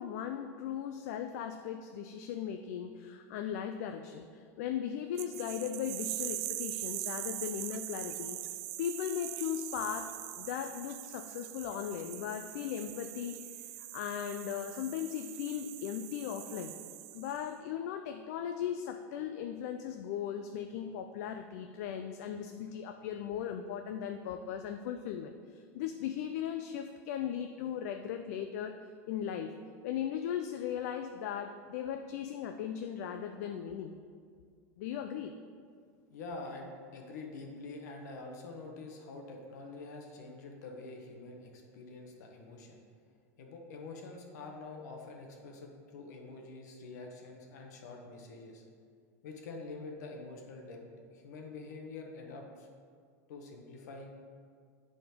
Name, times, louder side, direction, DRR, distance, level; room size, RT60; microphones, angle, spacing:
voice 1, 0.0-16.7 17.1-28.8 29.1-29.6 29.8-33.9 34.8-35.3, left 9 dB, 65° left, 7 dB, 0.4 m, -38 dB
sound 1, 5.2-17.5, right 15 dB, 60° right, 0.4 m, -42 dB
voice 2, 36.1-42.8 43.4-48.6 49.2-50.8 51.1-52.7 53.3-54.1, left 3 dB, 80° left, 2 dB, 1.3 m, -46 dB
9.6 x 4.3 x 5.1 m, 2.1 s
supercardioid pair, 145°, 9 cm